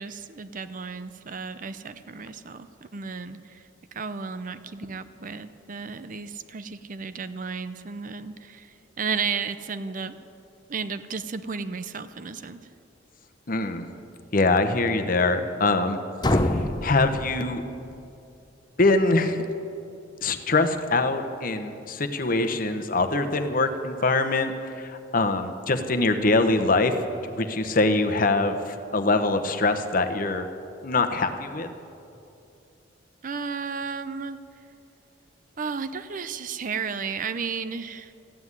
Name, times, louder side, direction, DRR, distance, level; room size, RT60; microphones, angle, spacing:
voice 1, 0.0-10.2 10.7-12.7 33.2-34.4 35.6-38.1, right 5 dB, 45° right, 12 dB, 0.6 m, -33 dB
voice 2, 13.5-13.9 14.3-16.0 16.3-17.6 18.8-19.4 20.2-26.9 27.4-30.5 30.8-31.7, left 3 dB, 45° left, 7 dB, 1.0 m, -23 dB
sound 1, 16.2-18.1, left 1 dB, 20° left, 0.7 m, -26 dB
14.0 x 9.6 x 9.6 m, 2.7 s
head